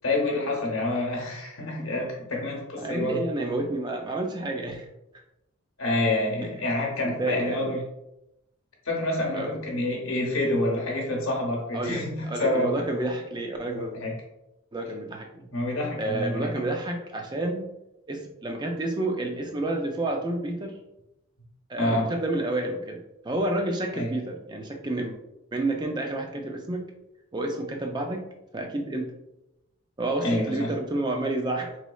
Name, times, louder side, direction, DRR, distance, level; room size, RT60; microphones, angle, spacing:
voice 1, 0.0-3.2 5.8-7.8 8.9-12.7 13.8-14.2 15.5-16.6 21.8-22.1 23.9-24.2 30.2-30.7, left 1 dB, 70° left, -1 dB, 0.9 m, -27 dB
voice 2, 2.8-4.9 6.4-6.6 7.0-7.8 9.3-9.5 11.7-13.9 14.7-15.5 16.0-17.6 18.1-20.8 21.7-25.2 25.5-26.9 27.3-28.3 28.5-29.1 30.0-31.8, right 2 dB, 20° right, 3 dB, 0.4 m, -30 dB
3.9 x 3.1 x 2.3 m, 0.90 s
head